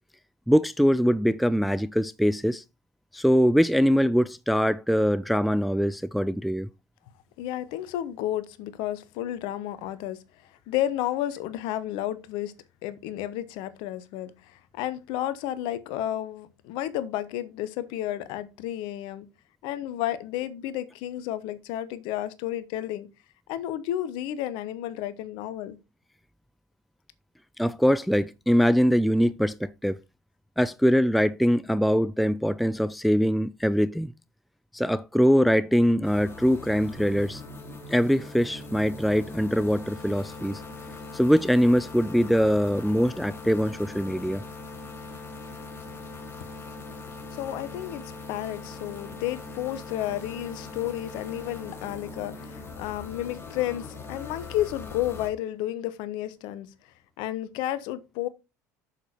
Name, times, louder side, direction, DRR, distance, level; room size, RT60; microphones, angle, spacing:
voice 1, 0.5-2.6 3.1-6.7 27.6-30.0 30.6-34.1 34.7-37.4 37.9-40.6 41.1-44.4, equal, ahead, 0.4 m, -23 dB
voice 2, 7.4-12.5 12.8-19.3 19.6-23.1 23.5-25.8 47.3-56.7 57.2-58.3, left 13 dB, 55° left, 1.0 m, -32 dB
sound 1, 36.0-55.3, left 3 dB, 25° left, 3.2 m, -41 dB
7.8 x 6.8 x 4.3 m
figure-of-eight pair, 65°, 9 cm